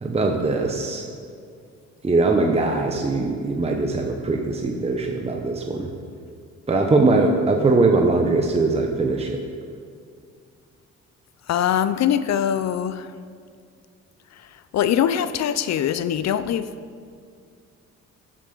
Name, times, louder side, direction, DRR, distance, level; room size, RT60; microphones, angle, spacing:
voice 1, 0.0-1.1 2.0-5.9 6.7-9.4, right 3 dB, 20° right, 2 dB, 0.9 m, -21 dB
voice 2, 11.5-13.1 14.7-16.7, left 9 dB, 60° left, 13 dB, 0.6 m, -22 dB
13.5 x 7.6 x 4.0 m, 2.2 s
cardioid pair, 90°, 30 cm